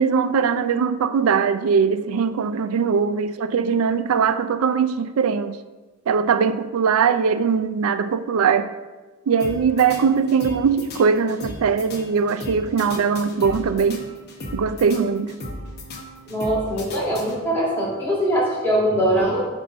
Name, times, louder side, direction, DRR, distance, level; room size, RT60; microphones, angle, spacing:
voice 1, 0.0-5.6 6.1-8.7 9.3-14.1 14.5-15.3, right 6 dB, 65° right, 0.4 m, -20 dB
sound 1, 9.4-17.7, left 1 dB, 45° left, 0.9 m, -37 dB
voice 2, 16.3-19.5, right 1 dB, 10° left, 1.7 m, -22 dB
7.8 x 2.6 x 5.2 m
head